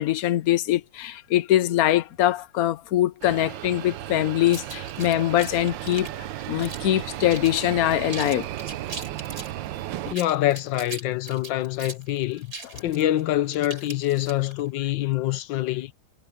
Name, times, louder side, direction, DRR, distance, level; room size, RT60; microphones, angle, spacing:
voice 1, 0.0-6.1 6.5-8.5, left 13 dB, 60° left, 1.1 m, -23 dB
sound 1, 3.2-10.2, right 13 dB, 85° right, 1.4 m, -35 dB
sound 2, 4.5-7.0 7.3-7.6 7.9-9.5 10.0-14.6, right 3 dB, 50° right, 4.3 m, -40 dB
voice 2, 10.1-12.5 12.8-15.9, left 14 dB, 85° left, 1.5 m, -25 dB
omnidirectional pair, 2.0 m